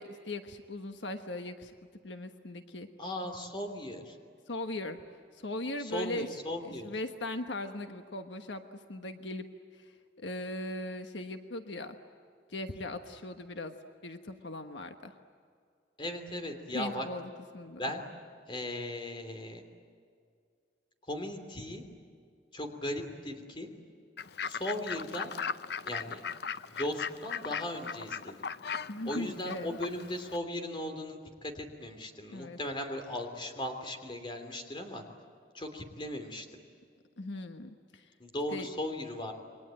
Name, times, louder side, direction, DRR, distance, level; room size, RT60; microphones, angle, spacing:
voice 1, 0.0-1.7 2.0-2.9 4.5-5.0 5.3-6.3 6.6-9.4 9.7-12.0 12.5-13.8 14.0-15.1 16.7-17.8 28.9-29.8 32.3-32.6 37.2-38.1 38.5-38.7, left 2 dB, 80° left, 7 dB, 1.3 m, -39 dB
voice 2, 3.0-4.2 5.8-6.9 16.0-17.1 17.8-18.1 18.5-19.6 21.1-21.8 22.5-23.7 24.5-25.3 25.8-26.2 26.6-28.3 29.0-35.0 35.5-36.5 38.2-39.3, left 1 dB, 25° left, 5 dB, 3.0 m, -37 dB
Fowl / Bird, 24.2-30.4, left 6 dB, 60° left, 0.6 m, -38 dB
28.5 x 23.0 x 9.0 m, 2.2 s
head